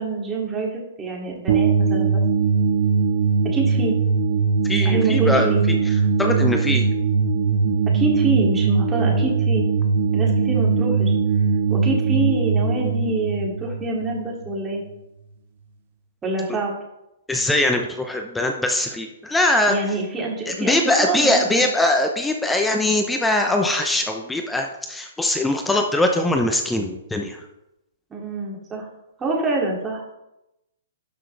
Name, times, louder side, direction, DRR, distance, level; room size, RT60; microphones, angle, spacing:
voice 1, 0.0-2.2 3.4-4.0 4.8-5.6 7.9-9.7 10.1-11.1 11.7-14.8 16.2-16.7 19.7-21.6 28.1-28.9 29.2-30.1, right 3 dB, 15° right, -2 dB, 2.7 m, -26 dB
sound 1, 1.5-14.6, right 5 dB, 60° right, 1.4 m, -20 dB
voice 2, 4.7-5.8 6.2-6.8 17.3-19.7 20.5-27.4, left 1 dB, 5° left, 3 dB, 0.8 m, -21 dB
12.0 x 6.2 x 3.4 m, 0.90 s
hypercardioid pair, 125°, 0 cm